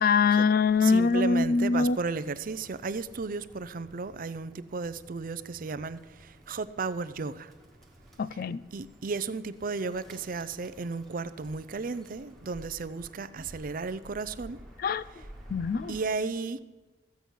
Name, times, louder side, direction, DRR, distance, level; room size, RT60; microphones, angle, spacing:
voice 1, 0.0-2.0 8.2-8.6 14.8-15.0 15.5-16.0, left 4 dB, 50° left, 18 dB, 0.4 m, -23 dB
Bird, 0.7-16.1, right 1 dB, ahead, 1.8 m, -53 dB
voice 2, 0.8-6.0 6.5-7.5 8.7-14.6 15.9-16.6, right 4 dB, 50° right, 15 dB, 0.5 m, -34 dB
14.5 x 8.2 x 6.2 m, 1.2 s
head